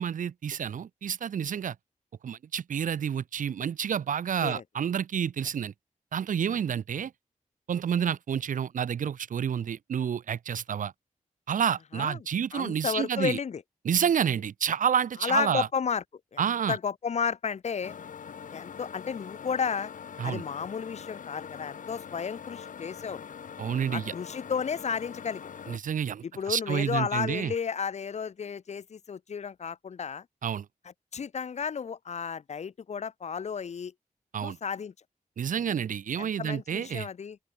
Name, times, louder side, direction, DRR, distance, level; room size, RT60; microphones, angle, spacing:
voice 1, 0.0-1.7 2.2-5.7 6.1-7.1 7.7-10.9 11.5-13.4 13.8-15.7 16.4-16.8 20.2-20.4 23.6-24.1 25.7-27.5 30.4-30.7 34.3-34.6 35.4-37.1, right 8 dB, 70° right, 0.6 m, -29 dB
voice 2, 11.9-12.3 12.5-13.6 15.2-16.0 16.3-16.4 16.7-17.9 18.5-19.9 20.2-23.2 23.9-25.4 26.3-30.2 31.1-33.9 34.4-34.9 36.2-37.4, left 6 dB, 55° left, 0.7 m, -32 dB
sound 1, 17.8-25.8, left 7 dB, 70° left, 1.1 m, -43 dB
open air
wide cardioid pair, 115°, 14 cm